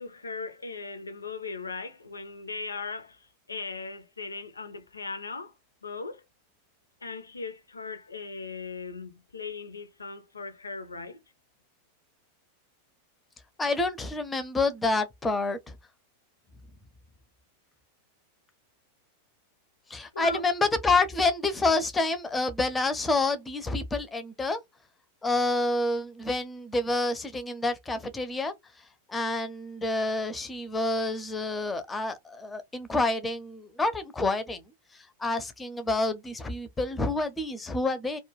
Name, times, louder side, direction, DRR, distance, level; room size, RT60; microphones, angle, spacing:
voice 1, 0.0-5.5 5.8-6.2 7.0-11.2 20.1-20.4, left 4 dB, 75° left, 0.5 m, -38 dB
voice 2, 13.6-15.6 19.9-24.6 25.2-28.5 29.1-34.6 35.2-38.2, left 2 dB, 15° left, 0.5 m, -28 dB
2.2 x 2.1 x 3.0 m
figure-of-eight pair, 90°, 0 cm